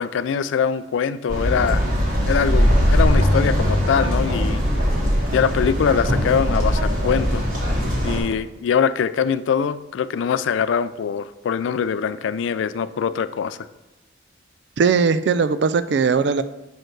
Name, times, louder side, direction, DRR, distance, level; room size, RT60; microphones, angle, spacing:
voice 1, 0.0-1.9 2.2-4.6 5.3-7.4 8.0-13.7, left 7 dB, 90° left, 14 dB, 0.3 m, -23 dB
sound 1, 1.3-8.2, equal, 45° right, 1.6 m, -20 dB
voice 2, 14.8-16.4, right 5 dB, 70° right, 13 dB, 0.3 m, -19 dB
6.5 x 4.4 x 4.6 m, 1.0 s
head